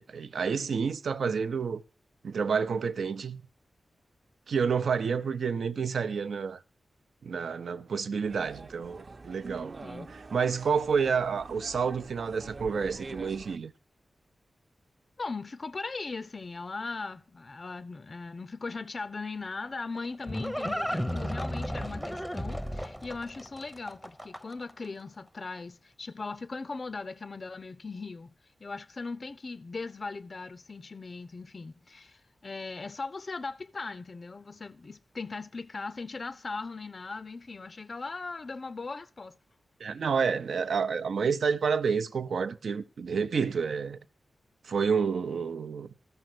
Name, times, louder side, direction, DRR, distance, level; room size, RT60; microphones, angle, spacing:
voice 1, 0.0-1.8 2.2-3.4 4.5-6.6 7.2-9.8 10.1-13.7 39.8-44.0 44.6-45.9, right 6 dB, 80° right, 0.7 m, -29 dB
sound 1, 8.2-13.6, right 3 dB, 40° right, 0.8 m, -45 dB
voice 2, 9.8-10.1 15.2-28.3 28.6-39.4, left 3 dB, 45° left, 0.5 m, -39 dB
Livestock farm animals working animals, 19.6-24.7, equal, ahead, 0.7 m, -34 dB
14.0 x 5.5 x 7.6 m
wide cardioid pair, 95°, 0 cm